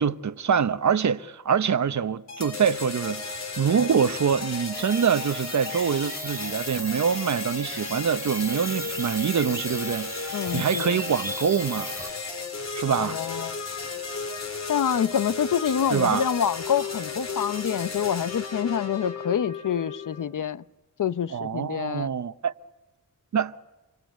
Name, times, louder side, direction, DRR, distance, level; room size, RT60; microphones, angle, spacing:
voice 1, 0.0-12.0 12.7-13.2 15.9-16.3 21.3-22.5 23.3-23.5, right 7 dB, 60° right, 0.9 m, -25 dB
sound 1, 2.3-20.2, left 4 dB, 55° left, 3.9 m, -34 dB
sound 2, 4.7-12.1, right 1 dB, 10° right, 2.8 m, -38 dB
voice 2, 10.3-11.0 13.0-13.6 14.7-20.6 21.0-22.1, left 8 dB, 75° left, 0.9 m, -27 dB
27.5 x 24.5 x 8.2 m
wide cardioid pair, 140°, 32 cm